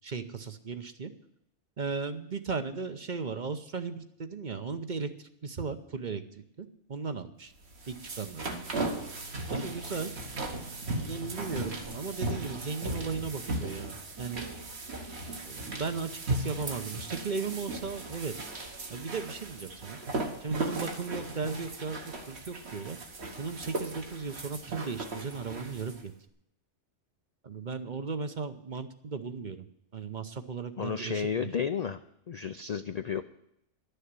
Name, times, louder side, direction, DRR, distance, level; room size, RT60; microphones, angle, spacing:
voice 1, 0.0-1.1 1.8-7.5 7.9-8.5 9.5-10.1 11.0-14.4 15.5-18.3 18.9-20.0 20.4-23.0 23.4-26.1 27.4-29.7 29.9-31.5, right 5 dB, 45° right, 9 dB, 0.9 m, -36 dB
sound 1, 7.6-26.0, right 2 dB, 60° right, 1.7 m, -37 dB
voice 2, 30.8-32.0 32.3-33.2, left 6 dB, 55° left, 10 dB, 0.4 m, -32 dB
11.5 x 6.8 x 9.5 m, 0.77 s
omnidirectional pair, 1.2 m